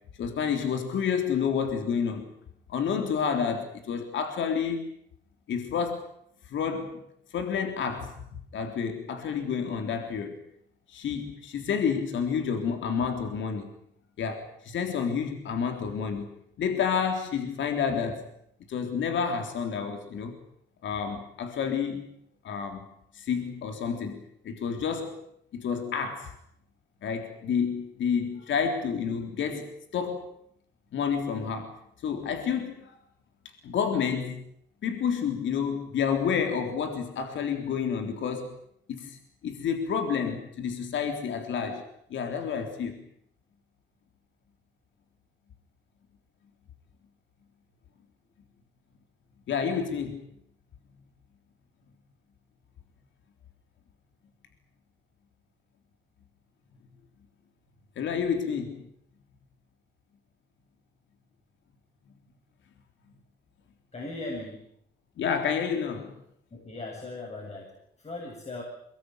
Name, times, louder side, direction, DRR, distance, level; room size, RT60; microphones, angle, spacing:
voice 1, 0.2-2.3 2.7-4.9 5.5-6.0 6.5-7.0 7.3-8.1 8.5-10.4 10.9-13.7 14.2-16.3 16.6-18.3 18.7-20.4 20.8-22.1 22.4-22.9 23.1-25.2 25.5-26.3 27.0-30.3 30.9-31.8 32.0-33.0 33.6-34.4 34.8-38.6 38.9-41.8 42.1-43.1 49.5-50.2 58.0-58.9 65.2-66.2, left 6 dB, 70° left, 6 dB, 3.7 m, -29 dB
voice 2, 63.9-64.7 66.5-67.7 68.0-68.6, left 2 dB, 35° left, -1 dB, 7.9 m, -38 dB
24.0 x 20.5 x 9.4 m, 0.69 s
cardioid pair, 90°, 20 cm